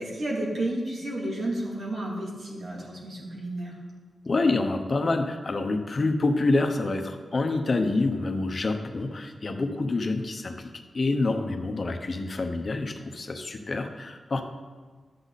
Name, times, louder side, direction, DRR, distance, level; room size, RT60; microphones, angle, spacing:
voice 1, 0.0-3.8, right 1 dB, 65° right, -4 dB, 2.9 m, -31 dB
voice 2, 4.3-14.4, left 2 dB, 40° left, 6 dB, 0.9 m, -27 dB
12.0 x 8.2 x 4.1 m, 1.4 s
wide cardioid pair, 125°, 0 cm